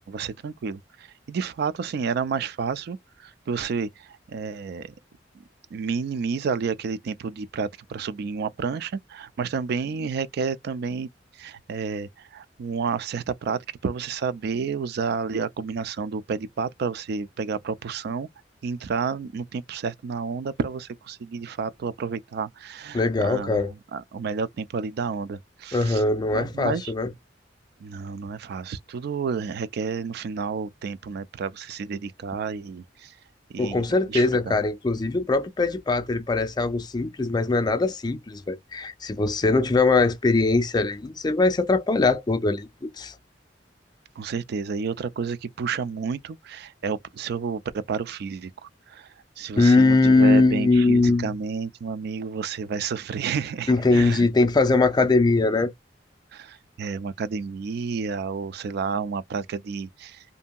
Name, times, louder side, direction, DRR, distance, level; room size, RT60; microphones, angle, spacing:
voice 1, 0.0-4.9 5.7-11.1 11.4-18.3 18.6-23.6 23.9-26.0 26.3-26.9 27.8-33.1 33.5-34.6 44.2-49.1 49.4-54.3 56.3-60.2, right 5 dB, 60° right, 0.3 m, -30 dB
voice 2, 22.9-23.7 25.7-27.1 33.6-42.7 43.0-43.1 49.6-51.3 53.7-55.7, left 3 dB, 25° left, 0.4 m, -21 dB
2.7 x 2.7 x 2.2 m
head